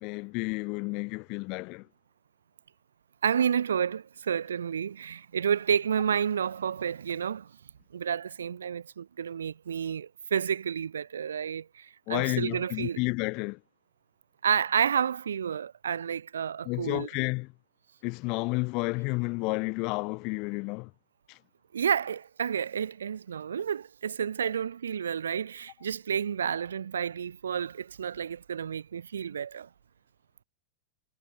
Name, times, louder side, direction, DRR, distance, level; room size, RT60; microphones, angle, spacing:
voice 1, 0.0-1.8 12.1-13.6 16.7-17.5 18.0-20.9, left 28 dB, 45° left, 0.5 m, -31 dB
voice 2, 3.2-7.5 7.9-13.0 14.4-17.1 21.7-29.7, right 8 dB, 70° right, 3.2 m, -30 dB
figure-of-eight pair, 90°, 0 cm